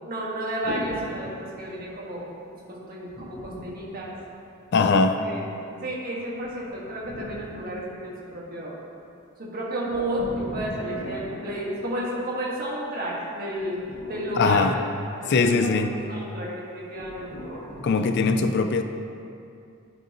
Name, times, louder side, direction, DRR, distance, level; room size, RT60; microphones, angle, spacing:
voice 1, 0.0-2.3 2.7-4.1 4.9-5.4 5.7-8.8 9.4-13.8 14.1-14.8 15.2-17.4, right 1 dB, 45° right, -5 dB, 1.6 m, -32 dB
sound 1, 0.6-2.1 3.1-4.7 6.3-8.4 9.9-12.4 13.5-15.4 16.9-17.9, equal, 70° left, 1.8 m, -40 dB
voice 2, 4.7-5.3 14.4-14.7 15.3-15.9 17.8-18.8, left 4 dB, 50° left, 8 dB, 0.4 m, -21 dB
12.0 x 5.4 x 2.9 m, 2.5 s
head